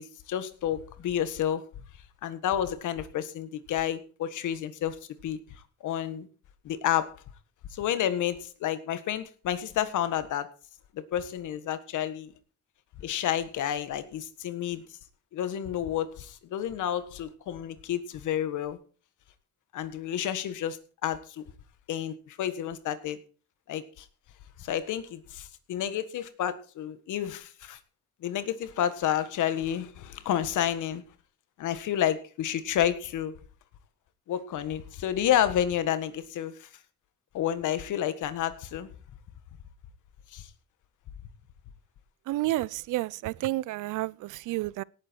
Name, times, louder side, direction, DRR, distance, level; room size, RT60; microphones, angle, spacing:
voice 1, 0.0-1.6 2.2-5.4 5.8-6.3 6.6-7.2 7.7-10.5 11.1-12.3 13.0-14.8 15.3-18.8 19.7-21.4 21.9-23.2 23.7-24.1 24.6-27.8 28.2-31.0 31.6-33.3 34.3-36.7 37.3-38.9 40.3-40.5, left 10 dB, 80° left, 1.7 m, -30 dB
voice 2, 42.3-44.8, right 17 dB, 85° right, 0.6 m, -30 dB
18.0 x 9.1 x 4.6 m
cardioid pair, 90°, 30 cm